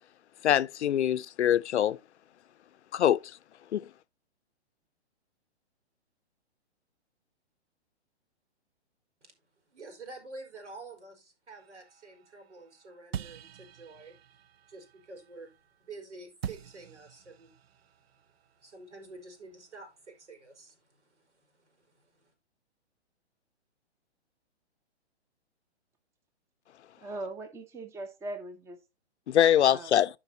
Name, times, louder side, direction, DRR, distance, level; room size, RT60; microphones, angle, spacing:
voice 1, 0.4-2.0 2.9-3.3 3.7-3.9 29.3-30.1, left 11 dB, 75° left, 0.6 m, -24 dB
voice 2, 9.7-22.3, right 3 dB, 85° right, 4.2 m, -49 dB
sound 1, 11.5-16.0 16.4-19.8, right 9 dB, 60° right, 0.6 m, -46 dB
voice 3, 27.0-28.8 29.6-30.0, right 2 dB, 10° right, 0.8 m, -40 dB
13.0 x 5.2 x 2.7 m
hypercardioid pair, 140°, 34 cm